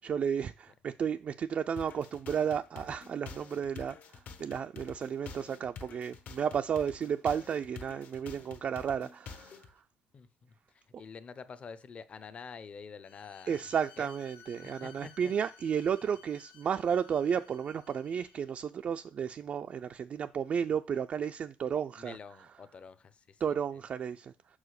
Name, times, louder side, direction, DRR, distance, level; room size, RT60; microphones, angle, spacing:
voice 1, 0.0-9.8 13.5-22.2 23.4-24.3, right 7 dB, 45° right, 0.4 m, -33 dB
sound 1, 1.8-9.7, left 5 dB, 55° left, 1.0 m, -48 dB
voice 2, 10.1-13.6 14.0-14.1 14.6-15.3 21.9-23.4, left 5 dB, 35° left, 0.7 m, -48 dB
Bowed string instrument, 13.0-18.5, left 8 dB, 85° left, 0.9 m, -57 dB
5.7 x 4.9 x 6.4 m
cardioid pair, 105°, 3 cm